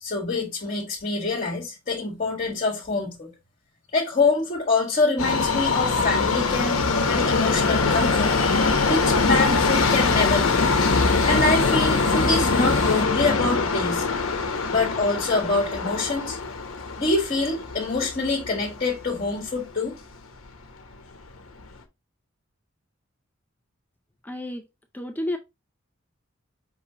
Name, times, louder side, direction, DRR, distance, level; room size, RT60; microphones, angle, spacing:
voice 1, 0.0-3.3 3.9-6.8 7.1-8.3 8.8-10.7 11.3-14.0 14.7-16.4 17.0-20.0, left 3 dB, 40° left, 1.5 m, -25 dB
Subway metro underground, 5.2-19.3 19.6-19.7 20.5-20.6 20.9-21.0 21.7-21.8, left 4 dB, 90° left, 0.9 m, -23 dB
sound 1, 7.9-13.0, equal, 40° right, 1.8 m, -35 dB
voice 2, 24.2-24.7 24.9-25.4, left 1 dB, 10° left, 0.4 m, -30 dB
5.7 x 3.2 x 2.8 m
head